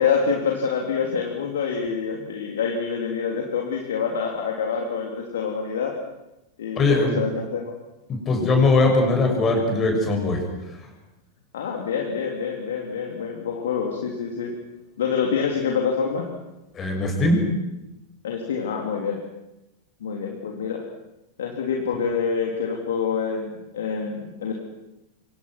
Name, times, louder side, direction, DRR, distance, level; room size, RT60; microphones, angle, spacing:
voice 1, 0.0-6.0 6.6-7.7 11.5-14.5 15.0-16.3 18.2-19.2 20.0-20.8 21.4-24.5, left 6 dB, 60° left, 1 dB, 3.6 m, -26 dB
voice 2, 6.8-7.2 8.1-10.5 16.7-17.5, left 2 dB, 25° left, 3 dB, 7.2 m, -20 dB
28.5 x 26.0 x 6.2 m, 0.95 s
figure-of-eight pair, 90°, 0 cm